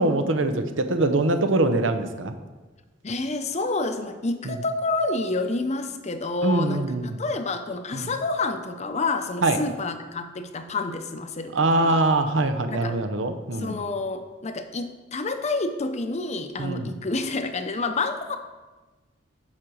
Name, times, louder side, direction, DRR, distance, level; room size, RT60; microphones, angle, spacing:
voice 1, 0.0-2.3 4.4-4.5 6.4-7.2 7.9-8.1 9.4-9.6 11.5-13.8 16.6-16.9, right 2 dB, 80° right, 9 dB, 0.7 m, -23 dB
voice 2, 3.0-12.0 12.7-13.0 13.6-18.4, left 3 dB, 35° left, 8 dB, 0.6 m, -29 dB
7.4 x 5.0 x 6.3 m, 1.2 s
head